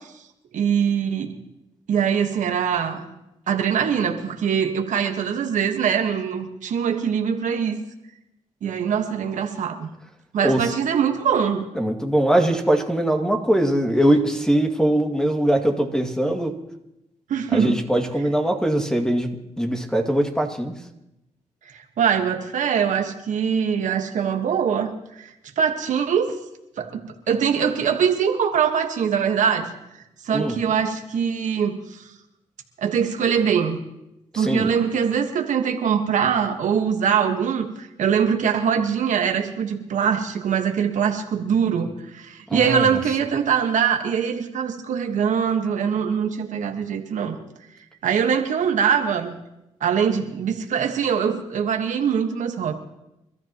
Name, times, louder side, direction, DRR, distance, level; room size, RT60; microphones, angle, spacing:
voice 1, 0.5-1.3 1.9-3.1 3.5-7.7 8.6-9.9 10.3-11.6 17.3-17.8 21.7-24.9 25.2-25.3 25.6-26.4 26.8-29.7 30.2-32.1 32.8-33.8 34.3-47.4 48.0-49.4 49.8-52.7, right 7 dB, 80° right, 5 dB, 1.4 m, -23 dB
voice 2, 11.8-16.5 17.5-19.3 19.6-20.7 30.3-30.6 34.3-34.7 42.5-43.0, right 1 dB, 5° left, 3 dB, 2.2 m, -21 dB
27.5 x 13.5 x 3.0 m, 0.88 s
cardioid pair, 70°, 13 cm